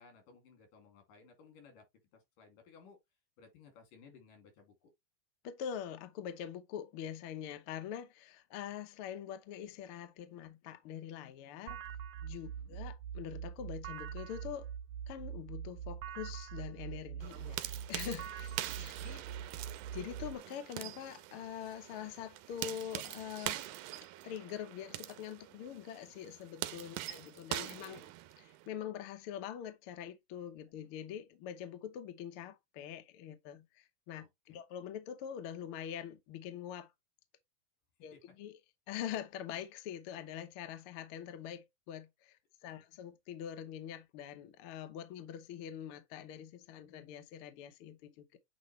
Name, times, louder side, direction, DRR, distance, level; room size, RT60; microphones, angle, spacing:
voice 1, 0.0-1.8 2.1-3.0 3.4-4.9 12.5-12.8 18.8-19.4 26.9-28.1 34.1-34.6 38.1-38.2, left 5 dB, 85° left, 4.0 m, -60 dB
voice 2, 5.4-11.8 12.2-14.7 15.1-19.2 19.9-23.6 24.0-28.0 28.4-36.9 38.0-38.6 38.9-48.4, left 9 dB, 70° left, 1.3 m, -44 dB
sound 1, 11.7-20.4, right 8 dB, 75° right, 1.8 m, -43 dB
sound 2, 17.2-28.7, right 15 dB, 90° right, 2.2 m, -44 dB
8.2 x 4.0 x 3.1 m
omnidirectional pair, 3.7 m